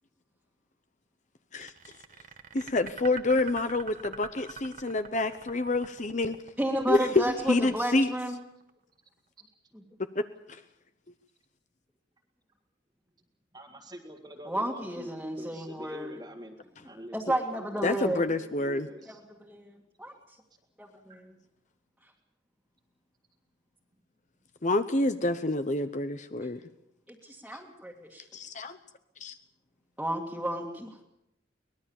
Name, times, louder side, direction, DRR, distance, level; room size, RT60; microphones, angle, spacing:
sound 1, 1.6-8.7, right 5 dB, 40° right, 1.3 m, -45 dB
voice 1, 2.5-6.4 6.9-8.1 10.1-10.2 17.8-18.9 24.6-26.6 28.3-28.8 29.2-29.3, left 2 dB, 40° left, 10 dB, 0.9 m, -27 dB
voice 2, 6.6-8.4 9.7-9.8 14.5-16.1 17.1-18.2 19.1-19.2 19.4-20.1 20.8-21.3 27.1-28.3 30.0-31.0, right 1 dB, 5° right, -3 dB, 2.1 m, -32 dB
voice 3, 13.5-17.2 17.5-19.3, equal, 20° right, -2 dB, 1.8 m, -46 dB
24.0 x 19.5 x 7.2 m, 0.84 s
head